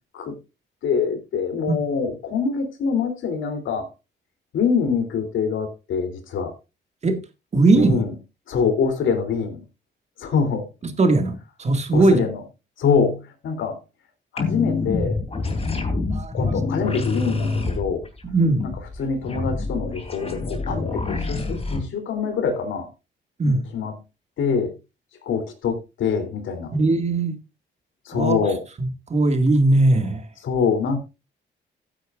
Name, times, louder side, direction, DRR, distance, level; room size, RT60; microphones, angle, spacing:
voice 1, 0.8-3.9 4.5-6.5 7.7-8.1 8.5-9.6 10.2-10.7 11.9-12.4 12.8-13.8 14.3-15.2 16.3-18.0 19.0-22.9 23.4-23.9 24.4-24.7 25.2-26.7 28.0-28.6 30.4-31.0, left 6 dB, 75° left, 3.2 m, -24 dB
voice 2, 7.5-8.0 10.8-12.3 16.1-16.5 18.2-18.7 23.4-23.6 26.7-27.4 28.1-28.4 28.8-30.2, right 2 dB, 35° right, 2.0 m, -19 dB
sound 1, 14.4-21.8, left 3 dB, 30° left, 3.1 m, -26 dB
15.5 x 9.1 x 2.5 m
cardioid pair, 90°, 20 cm